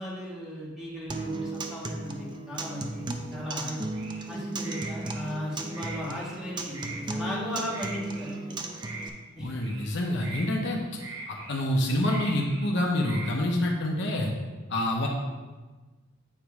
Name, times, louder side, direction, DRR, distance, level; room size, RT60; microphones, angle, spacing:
voice 1, 0.0-3.8 4.3-8.6 9.3-9.5, equal, ahead, -6 dB, 1.5 m, -36 dB
Acoustic guitar, 1.1-9.1, right 2 dB, 20° right, 0.4 m, -35 dB
sound 1, 3.9-4.2 4.6-5.3 5.7-6.4 6.7-7.0 7.7-8.4 8.8-9.1 9.6-9.9 10.2-10.5 11.0-11.6 12.0-12.7 13.0-13.3, right 3 dB, 75° right, 1.0 m, -42 dB
voice 2, 9.4-10.8 11.3-14.3 14.7-15.1, left 1 dB, 55° left, 0 dB, 0.8 m, -27 dB
8.7 x 3.1 x 4.8 m, 1.2 s
head